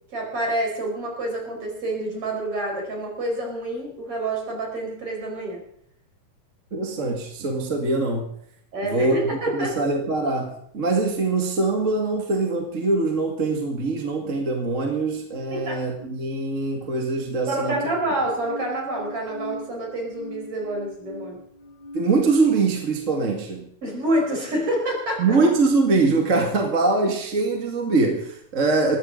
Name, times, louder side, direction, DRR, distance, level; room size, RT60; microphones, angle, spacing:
voice 1, 0.1-5.6 8.7-9.8 15.5-15.8 17.5-21.4 23.8-25.4, right 1 dB, 45° right, 0 dB, 5.6 m, -27 dB
voice 2, 6.7-8.3 8.8-17.8 21.9-23.7 25.2-29.0, right 3 dB, 30° right, 2 dB, 2.1 m, -23 dB
sound 1, 16.0-22.4, left 1 dB, 35° left, 3.9 m, -40 dB
19.5 x 15.0 x 3.9 m, 0.70 s
omnidirectional pair, 3.5 m